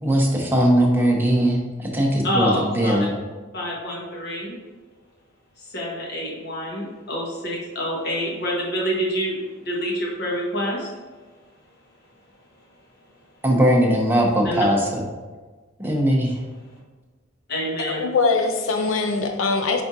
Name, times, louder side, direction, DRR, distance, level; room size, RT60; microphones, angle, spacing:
voice 1, 0.0-3.1 13.4-15.0 15.8-16.4, equal, 10° right, -1 dB, 0.7 m, -20 dB
voice 2, 2.2-3.0 3.5-4.6 5.6-10.9 14.4-14.7 17.5-18.0, equal, 55° left, -2 dB, 1.2 m, -27 dB
voice 3, 17.9-19.8, left 4 dB, 85° left, 5 dB, 0.5 m, -22 dB
4.9 x 3.5 x 2.7 m, 1.3 s
head